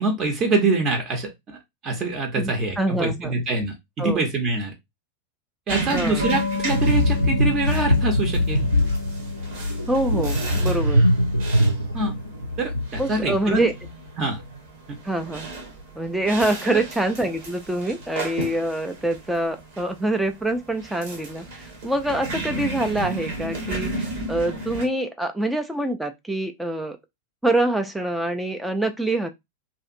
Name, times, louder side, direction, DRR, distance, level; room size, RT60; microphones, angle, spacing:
voice 1, 0.0-1.6 1.8-4.7 5.7-8.7 11.9-12.2 12.6-13.7 14.2-14.4 14.9-15.0 16.6-16.8, right 3 dB, 30° right, 0.7 m, -25 dB
voice 2, 2.4-3.3 4.0-4.3 5.9-6.3 9.9-11.0 12.9-13.7 15.0-15.5 16.0-27.0 27.4-29.3, right 1 dB, 5° right, 0.3 m, -25 dB
sound 1, 5.7-24.9, right 2 dB, 55° right, 0.9 m, -35 dB
sound 2, 6.2-12.4, left 4 dB, 85° right, 0.6 m, -33 dB
sound 3, 6.7-14.1 14.3-14.6, left 1 dB, 90° left, 0.4 m, -22 dB
2.6 x 2.5 x 2.4 m
figure-of-eight pair, 90°, 0 cm